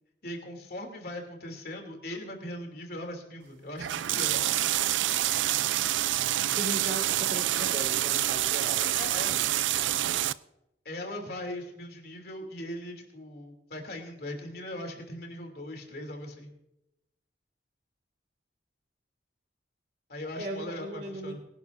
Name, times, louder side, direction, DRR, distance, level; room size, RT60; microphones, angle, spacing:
voice 1, 0.2-4.5 8.9-9.4 10.8-16.5 20.1-21.4, left 1 dB, 55° left, 3 dB, 3.0 m, -39 dB
sound 1, 3.8-10.3, right 13 dB, 80° right, 0.4 m, -27 dB
voice 2, 6.5-8.9 20.4-21.4, right 1 dB, 50° right, -1 dB, 2.2 m, -37 dB
23.0 x 11.5 x 2.6 m, 0.87 s
head